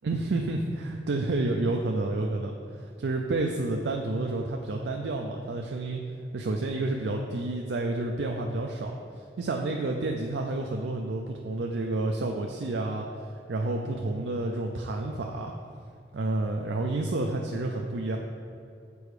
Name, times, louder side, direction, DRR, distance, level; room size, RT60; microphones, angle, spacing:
voice 1, 0.0-6.0 6.3-8.9 9.4-15.5 16.1-18.2, right 2 dB, 85° right, 1 dB, 0.5 m, -30 dB
6.9 x 4.5 x 4.8 m, 2.4 s
head